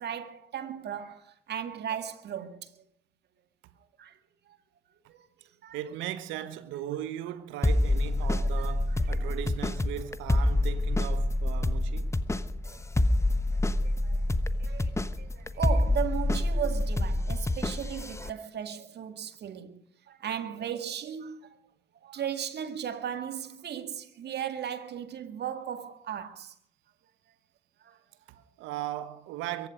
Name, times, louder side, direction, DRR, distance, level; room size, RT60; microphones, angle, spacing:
voice 1, 0.0-2.7 4.0-4.1 5.1-5.3 5.6-5.8 8.9-9.2 12.7-12.8 13.5-14.2 14.6-19.8 20.1-21.6 22.0-26.5 27.8-28.0, right 9 dB, 55° right, 1.9 m, -36 dB
voice 2, 5.7-12.2 28.3-29.7, right 12 dB, 70° right, 1.2 m, -37 dB
sound 1, 7.6-18.3, left 1 dB, 15° left, 1.1 m, -27 dB
23.0 x 11.0 x 5.1 m
hypercardioid pair, 45°, 20 cm